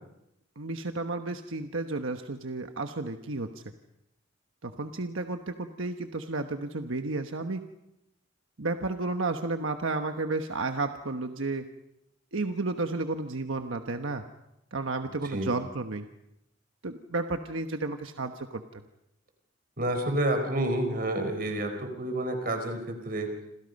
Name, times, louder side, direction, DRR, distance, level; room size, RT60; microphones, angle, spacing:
voice 1, 0.6-3.6 4.6-7.7 8.6-11.7 12.3-14.2 14.7-16.1 16.8-18.8, right 3 dB, 85° right, 6 dB, 1.2 m, -32 dB
voice 2, 19.8-23.3, right 1 dB, 45° right, 6 dB, 4.6 m, -29 dB
28.0 x 27.0 x 5.4 m, 0.85 s
head